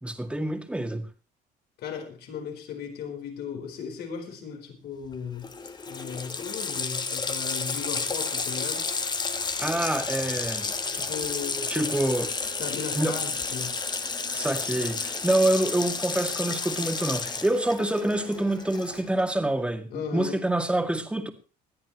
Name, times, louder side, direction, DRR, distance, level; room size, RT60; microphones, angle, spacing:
voice 1, 0.0-1.0 9.6-10.7 11.7-12.3 12.9-13.2 14.3-21.3, right 1 dB, 5° right, 2.1 m, -26 dB
voice 2, 1.8-8.9 10.9-12.0 12.5-13.8 19.9-20.4, left 7 dB, 75° left, 4.4 m, -36 dB
Water tap faucet, 5.1-5.2 5.4-19.2, left 4 dB, 25° left, 1.2 m, -31 dB
sound 1, 8.4-18.7, right 6 dB, 85° right, 7.7 m, -50 dB
20.5 x 13.5 x 3.2 m
cardioid pair, 110°, 17 cm